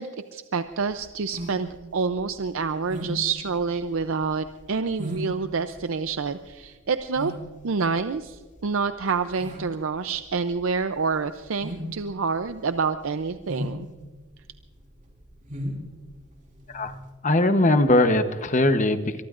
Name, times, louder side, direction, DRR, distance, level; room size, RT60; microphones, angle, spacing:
voice 1, 0.0-7.3 7.6-13.9, right 5 dB, 70° right, 10 dB, 0.5 m, -27 dB
sound 1, 0.8-17.1, equal, 35° right, 3.9 m, -38 dB
voice 2, 17.2-19.2, left 1 dB, 35° left, 9 dB, 0.9 m, -20 dB
24.0 x 23.0 x 2.5 m, 1.4 s
head